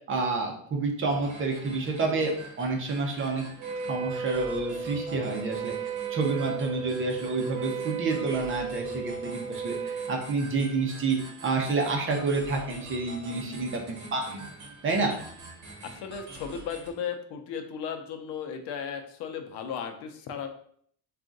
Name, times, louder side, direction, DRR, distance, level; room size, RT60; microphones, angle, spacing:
voice 1, 0.1-3.5 3.9-11.2 11.4-14.4 14.8-15.1, right 3 dB, 30° right, 2 dB, 0.7 m, -29 dB
sound 1, 1.1-16.9, right 2 dB, 45° right, 1.0 m, -46 dB
Wind instrument woodwind instrument, 3.6-10.2, right 6 dB, 85° right, 0.7 m, -35 dB
voice 2, 15.8-20.5, left 7 dB, 80° left, 7 dB, 0.7 m, -36 dB
3.6 x 2.4 x 3.8 m, 0.62 s
cardioid pair, 150°, 40 cm